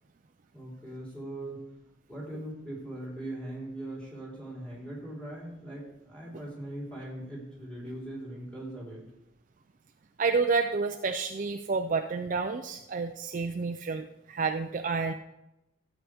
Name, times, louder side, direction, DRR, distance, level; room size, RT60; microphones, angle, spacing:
voice 1, 0.5-1.6 2.1-9.0, right 1 dB, 5° left, -6 dB, 3.9 m, -40 dB
voice 2, 10.2-15.1, right 4 dB, 40° right, 6 dB, 0.4 m, -29 dB
13.0 x 8.4 x 3.5 m, 0.90 s
head